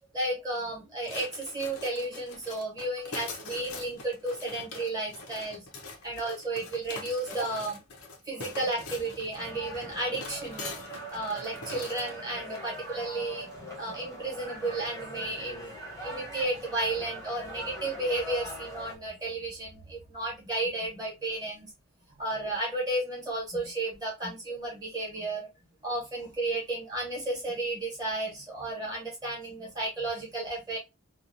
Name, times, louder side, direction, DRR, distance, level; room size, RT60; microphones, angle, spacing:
voice 1, 0.1-5.7 6.0-7.8 8.3-10.8 11.1-13.5 13.8-15.7 16.0-21.7 22.1-25.5 25.8-30.8, right 2 dB, 15° right, -2 dB, 1.0 m, -33 dB
sound 1, 1.0-12.2, left 3 dB, 75° left, 0.7 m, -43 dB
sound 2, 9.4-19.0, right 1 dB, 15° left, 0.8 m, -42 dB
2.7 x 2.3 x 2.5 m, 0.23 s
head